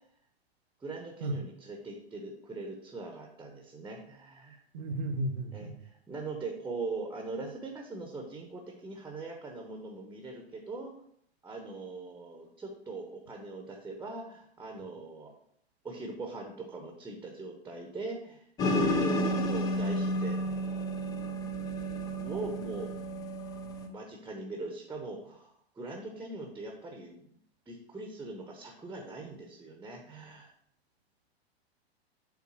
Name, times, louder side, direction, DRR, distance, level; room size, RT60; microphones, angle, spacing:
voice 1, 0.8-4.6 5.5-10.9 11.4-15.3 15.8-20.7 22.1-22.9 23.9-27.4 27.7-30.5, right 2 dB, 5° right, 2 dB, 0.9 m, -41 dB
voice 2, 4.7-5.7, right 1 dB, 40° right, 8 dB, 0.9 m, -33 dB
sound 1, 18.6-23.9, equal, 10° left, 0.5 m, -31 dB
7.5 x 3.7 x 6.1 m, 0.68 s
figure-of-eight pair, 105°, 32 cm